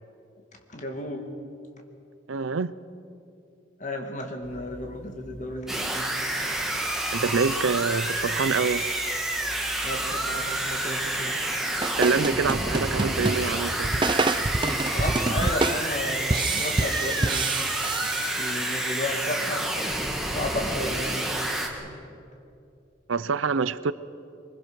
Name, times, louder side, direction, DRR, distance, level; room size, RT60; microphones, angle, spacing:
voice 1, 0.7-1.3 3.8-6.1 9.8-11.4 14.9-17.7 18.3-19.7 20.3-21.6 21.8-22.0, left 1 dB, 40° left, 3 dB, 2.2 m, -33 dB
voice 2, 2.3-2.7 7.1-8.9 12.0-14.0 23.1-23.9, right 5 dB, 80° right, 17 dB, 0.6 m, -26 dB
sound 1, 4.4-15.6, equal, 90° left, 7.3 m, -49 dB
sound 2, 5.7-21.7, right 1 dB, ahead, 1.7 m, -29 dB
sound 3, 11.5-18.9, right 3 dB, 25° right, 0.5 m, -28 dB
24.0 x 21.5 x 6.3 m, 2.7 s
head